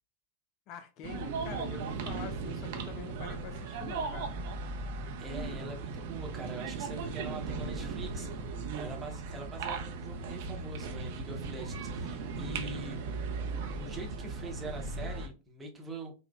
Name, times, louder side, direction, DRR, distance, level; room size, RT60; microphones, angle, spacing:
voice 1, 0.7-4.3, left 8 dB, 40° left, 0.3 m, -45 dB
sound 1, 1.0-15.3, right 4 dB, 50° right, 0.5 m, -37 dB
voice 2, 5.2-8.3 8.6-13.0 13.8-16.1, right 2 dB, 15° right, 0.8 m, -43 dB
4.6 x 2.1 x 2.3 m
figure-of-eight pair, 90°, 0 cm